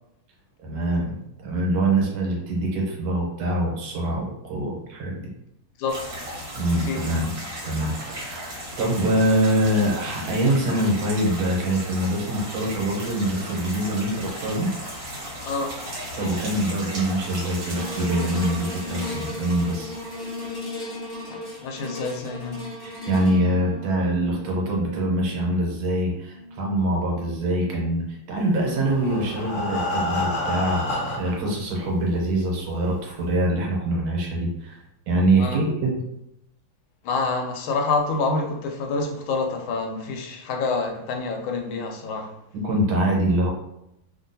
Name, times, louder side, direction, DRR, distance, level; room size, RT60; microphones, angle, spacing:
voice 1, 0.6-5.3 6.6-14.7 16.2-19.9 22.8-34.8 35.1-36.0 42.5-43.5, right 1 dB, 80° right, 1.6 m, -24 dB
sound 1, 5.9-20.7, equal, 55° right, 1.1 m, -36 dB
voice 2, 15.4-15.8 21.3-22.6 35.4-35.6 37.0-42.3, left 3 dB, 90° left, 1.4 m, -27 dB
sound 2, 17.7-28.1 28.6-28.7, left 1 dB, 15° left, 0.8 m, -36 dB
Breathing, 28.6-31.5 32.3-32.4 32.7-32.8 33.3-33.4, left 1 dB, 75° left, 1.4 m, -28 dB
3.6 x 2.3 x 2.6 m
omnidirectional pair, 2.2 m